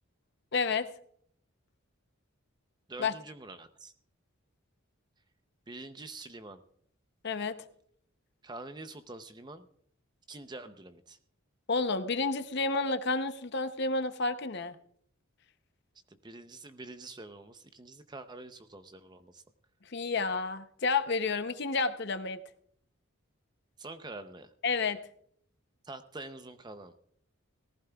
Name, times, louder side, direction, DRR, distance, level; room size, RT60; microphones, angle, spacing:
voice 1, 0.5-0.9 3.0-3.1 7.2-7.6 11.7-14.8 19.9-22.4 24.6-25.0, left 4 dB, 50° left, 10 dB, 0.7 m, -30 dB
voice 2, 2.9-3.9 5.7-6.6 8.4-9.7 10.3-11.2 16.1-19.4 23.8-24.5 25.8-26.9, right 2 dB, 20° right, 10 dB, 0.6 m, -46 dB
18.5 x 14.5 x 2.3 m, 0.64 s
head